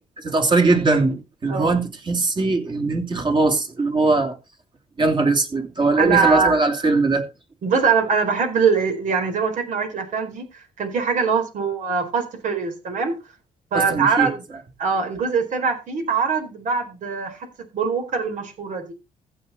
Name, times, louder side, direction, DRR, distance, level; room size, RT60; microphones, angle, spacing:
voice 1, 0.2-4.4 5.0-7.2 13.7-14.4, right 3 dB, 35° right, 3.1 m, -20 dB
voice 2, 1.5-1.8 6.0-6.6 7.6-13.1 13.7-14.4 14.8-17.5 17.7-18.9, right 5 dB, 65° right, 4.4 m, -22 dB
15.0 x 7.1 x 4.2 m
cardioid pair, 90°, 14 cm